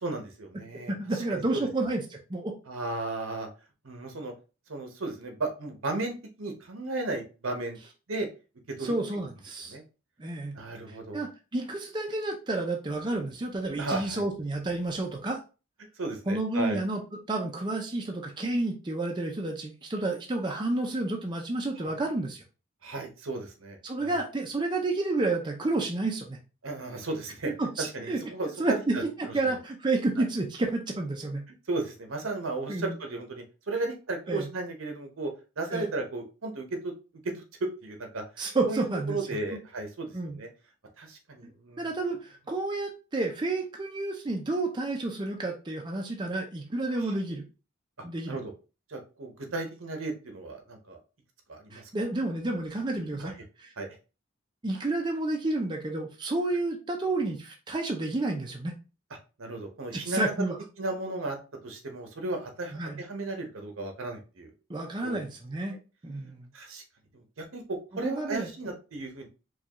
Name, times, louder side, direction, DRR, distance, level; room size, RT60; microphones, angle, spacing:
voice 1, 0.0-1.6 2.7-3.5 3.8-4.3 4.7-7.8 8.1-8.3 8.8-8.9 9.7-9.8 10.5-11.2 13.8-14.2 16.0-16.8 21.8-22.0 22.8-24.1 26.6-27.5 27.8-29.0 29.4-29.6 30.2-30.3 31.7-35.3 35.6-36.9 37.2-37.4 37.8-40.5 41.0-41.9 47.0-47.2 48.3-48.5 48.9-51.0 51.5-51.9 53.2-53.3 53.8-53.9 59.4-60.3 60.8-61.4 61.6-64.5 65.0-65.2 66.5-66.8 67.1-69.3, right 2 dB, 75° right, 4 dB, 0.9 m, -35 dB
voice 2, 0.9-2.5 8.8-9.8 10.2-10.5 10.9-15.4 16.3-17.0 17.3-22.4 23.8-26.4 27.6-28.2 28.6-31.4 32.7-32.9 34.3-34.5 35.7-35.9 38.4-39.2 39.5-39.6 40.1-40.4 41.4-41.5 41.8-47.4 48.0-48.4 51.7-53.3 53.6-53.7 54.6-58.7 59.9-60.6 62.7-63.0 64.7-65.8 66.0-66.5 68.0-68.5, right 2 dB, 20° right, 1 dB, 0.5 m, -30 dB
4.6 x 2.3 x 2.9 m, 0.32 s
head